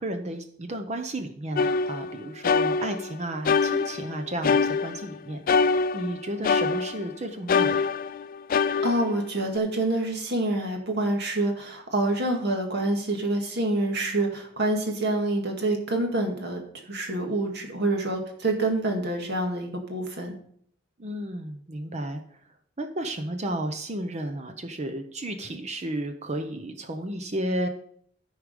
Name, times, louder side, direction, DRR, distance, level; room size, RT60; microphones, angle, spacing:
voice 1, 0.0-7.9 21.0-22.2 22.8-27.7, right 1 dB, 35° right, 6 dB, 0.8 m, -33 dB
sound 1, 1.6-3.1 3.4-5.2 5.5-7.1 7.5-9.6, left 5 dB, 50° left, 0.4 m, -25 dB
voice 2, 8.8-16.6 16.9-20.3, right 2 dB, 60° right, 2 dB, 2.0 m, -27 dB
13.0 x 4.8 x 5.2 m, 0.63 s
head